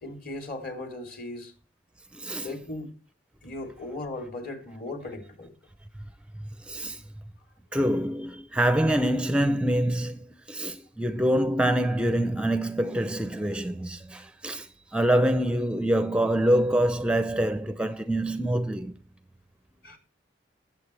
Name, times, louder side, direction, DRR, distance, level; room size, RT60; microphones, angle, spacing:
voice 1, 0.0-1.5 2.4-2.9 3.4-5.5 6.7-6.8 19.8-20.0, left 2 dB, 50° left, 3.0 m, -37 dB
voice 2, 2.1-2.5 6.6-7.0 7.7-19.0, right 1 dB, 5° right, 0.5 m, -25 dB
21.0 x 7.5 x 3.2 m
head